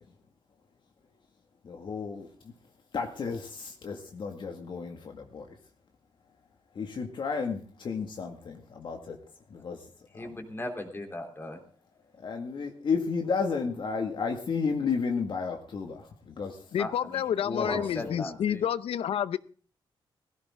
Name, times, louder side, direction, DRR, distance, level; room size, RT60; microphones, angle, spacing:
voice 1, 1.7-2.3 2.9-5.5 6.8-9.2 9.5-9.8 10.2-10.4 12.2-16.0 16.3-16.6 17.5-18.1, left 5 dB, 55° left, 2.0 m, -32 dB
voice 2, 10.1-11.6 16.8-18.6, left 1 dB, 25° left, 3.5 m, -38 dB
voice 3, 16.7-19.4, left 9 dB, 85° left, 0.7 m, -29 dB
17.5 x 16.0 x 3.7 m
wide cardioid pair, 125°, 10 cm